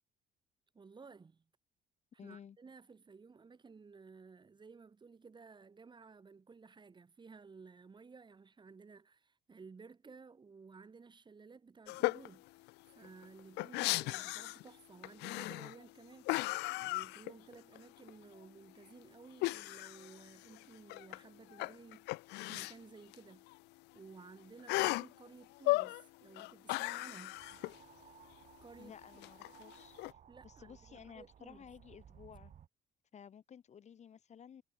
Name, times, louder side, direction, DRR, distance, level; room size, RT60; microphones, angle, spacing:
voice 1, 0.7-1.4 2.2-16.3 16.7-22.1 22.5-23.5 23.9-27.4 28.6-29.2 30.3-31.7, right 5 dB, 25° right, 5.0 m, -56 dB
voice 2, 2.2-2.6 28.8-30.2 30.4-32.5 33.1-34.6, left 8 dB, 45° left, 2.2 m, -54 dB
sound 1, 11.9-12.3 12.7-12.8 13.0-14.7 15.0-15.8 16.2-17.8 18.1-18.2 19.4-21.2 21.5-22.7 23.1-23.2 23.5-23.6 24.7-25.1 25.6-26.0 26.4-27.8 29.2-30.1, left 22 dB, 85° left, 0.4 m, -36 dB
sound 2, 27.3-32.7, right 9 dB, 45° right, 3.1 m, -60 dB
cardioid pair, 110°, 17 cm